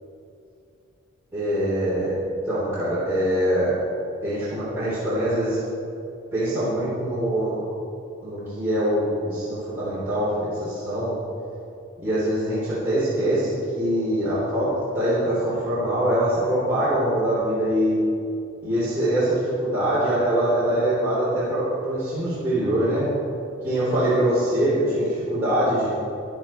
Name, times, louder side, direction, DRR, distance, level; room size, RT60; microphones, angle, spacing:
voice 1, 1.3-3.8 4.2-5.6 6.3-7.6 8.2-11.2 12.0-18.0 18.6-23.1 23.6-25.9, right 1 dB, 10° right, -12 dB, 3.1 m, -23 dB
14.0 x 11.0 x 4.4 m, 2.6 s
head